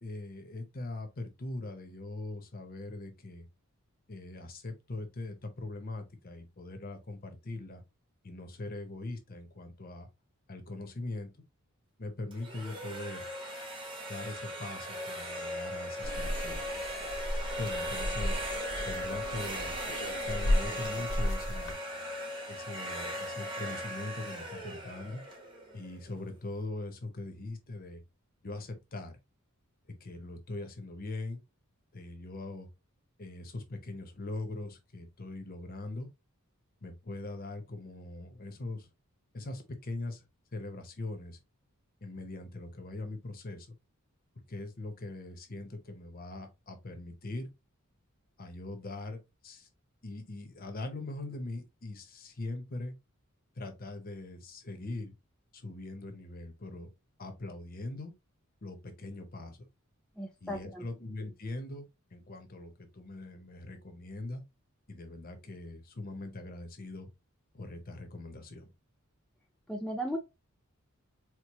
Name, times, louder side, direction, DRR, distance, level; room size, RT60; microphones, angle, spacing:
voice 1, 0.0-3.5 4.1-7.8 8.2-10.1 10.5-11.3 12.0-13.3 14.1-16.6 17.5-18.4 18.8-19.8 20.2-21.8 22.5-25.2 25.7-28.0 28.4-29.2 30.0-31.4 31.9-32.7 33.2-36.1 36.8-38.9 39.3-40.2 40.5-41.4 42.0-43.8 44.5-47.5 48.4-49.7 50.0-52.9 53.6-55.1 55.5-56.9 57.2-58.1 58.6-59.7 60.4-61.9 62.1-64.4 64.9-67.1 67.5-68.7, left 2 dB, 40° left, 0.7 m, -41 dB
sound 1, 12.3-26.2, equal, 25° right, 0.9 m, -38 dB
sound 2, 16.0-21.7, left 1 dB, 85° left, 1.2 m, -34 dB
voice 2, 60.2-60.9 69.7-70.2, equal, 5° left, 0.4 m, -36 dB
4.5 x 2.1 x 2.9 m
head